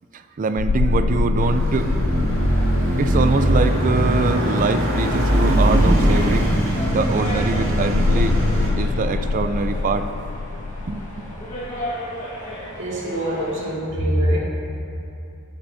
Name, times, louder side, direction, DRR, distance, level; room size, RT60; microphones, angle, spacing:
voice 1, 0.1-2.0 3.0-6.5 6.9-8.4 8.8-10.1 10.9-11.3, right 4 dB, 40° right, 9 dB, 0.4 m, -24 dB
sound 1, 0.6-5.0 7.7-11.8, left 3 dB, 60° left, 0.4 m, -25 dB
Car passing by / Accelerating revving vroom, 1.4-8.7, equal, 85° right, 2.1 m, -20 dB
sound 2, 2.3-13.7, equal, 40° left, 1.5 m, -36 dB
voice 2, 12.8-14.4, equal, 65° right, -6 dB, 2.2 m, -23 dB
11.5 x 8.9 x 2.7 m, 2.6 s
head